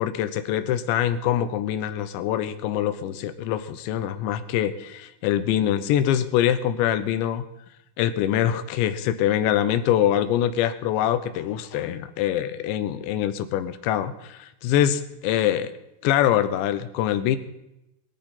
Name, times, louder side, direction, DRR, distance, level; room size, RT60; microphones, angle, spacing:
voice 1, 0.0-7.4 8.0-15.7 16.0-17.4, left 11 dB, 80° left, 11 dB, 3.1 m, -24 dB
21.5 x 12.5 x 4.4 m, 0.90 s
omnidirectional pair, 5.2 m